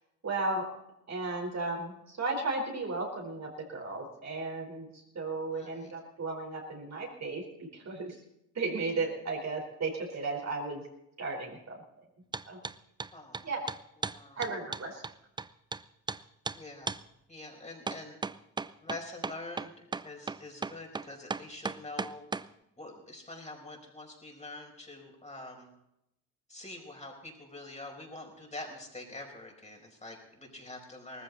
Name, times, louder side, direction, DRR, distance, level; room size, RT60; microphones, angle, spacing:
voice 1, 0.2-0.7 1.1-8.2 8.5-10.8 11.2-11.8 12.5-12.6 13.4-13.6 14.4-15.0, right 3 dB, 40° right, 0 dB, 4.4 m, -35 dB
voice 2, 5.5-5.9 13.1-13.6 14.0-14.4 16.5-17.0 17.3-18.2 18.8-22.3 22.8-25.7 26.5-31.2, left 2 dB, 15° left, 0 dB, 5.0 m, -45 dB
sound 1, 12.3-12.8 13.0-15.8 16.1-16.2 16.5-16.6 16.9-17.0 17.9-22.5, right 4 dB, 10° right, 0.5 m, -35 dB
19.0 x 15.0 x 4.1 m, 0.83 s
hypercardioid pair, 60°, 42 cm